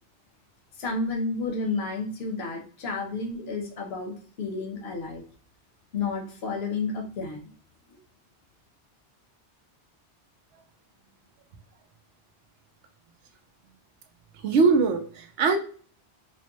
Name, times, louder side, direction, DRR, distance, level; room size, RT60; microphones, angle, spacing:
voice 1, 0.8-5.2 5.9-7.5 7.9-8.0, left 3 dB, 65° left, 2 dB, 1.1 m, -31 dB
voice 2, 14.4-15.6, right 4 dB, 85° right, 4 dB, 1.0 m, -21 dB
4.4 x 2.1 x 2.9 m, 0.43 s
omnidirectional pair, 1.2 m